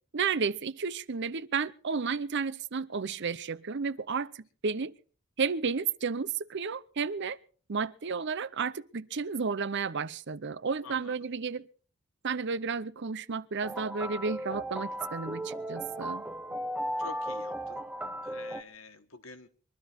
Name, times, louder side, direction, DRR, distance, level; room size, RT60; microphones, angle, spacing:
voice 1, 0.1-4.9 5.4-7.4 7.7-11.7 12.2-16.2, right 5 dB, 55° right, 0.7 m, -32 dB
voice 2, 10.8-11.3 17.0-17.8 18.2-19.5, left 4 dB, 65° left, 1.6 m, -48 dB
sound 1, 13.6-18.6, equal, 5° right, 0.7 m, -36 dB
23.0 x 12.5 x 4.4 m
head